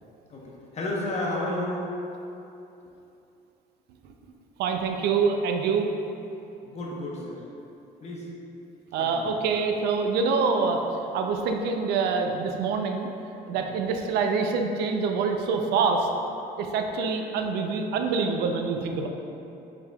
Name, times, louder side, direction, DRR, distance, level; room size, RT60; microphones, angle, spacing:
voice 1, 0.3-1.9 6.6-7.4 8.0-8.2 9.0-9.3 13.5-13.6, left 1 dB, 40° left, -4 dB, 0.8 m, -32 dB
voice 2, 4.6-5.9 8.9-10.8 11.1-13.1 13.5-16.1 16.6-19.1, right 5 dB, 75° right, 4 dB, 0.4 m, -25 dB
4.7 x 3.5 x 2.2 m, 2.9 s
cardioid pair, 110°, 17 cm